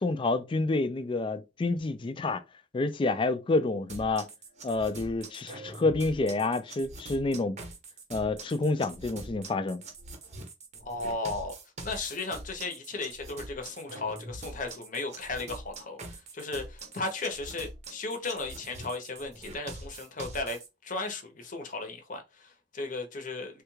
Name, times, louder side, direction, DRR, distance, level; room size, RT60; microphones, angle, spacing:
voice 1, 0.0-2.4 2.7-4.3 4.6-7.6 8.1-9.8, left 3 dB, 30° left, 0.3 m, -28 dB
sound 1, 3.9-20.7, right 2 dB, 40° right, 0.7 m, -44 dB
voice 2, 10.8-11.5 11.8-23.6, left 3 dB, 50° left, 0.7 m, -35 dB
3.2 x 2.3 x 3.1 m
head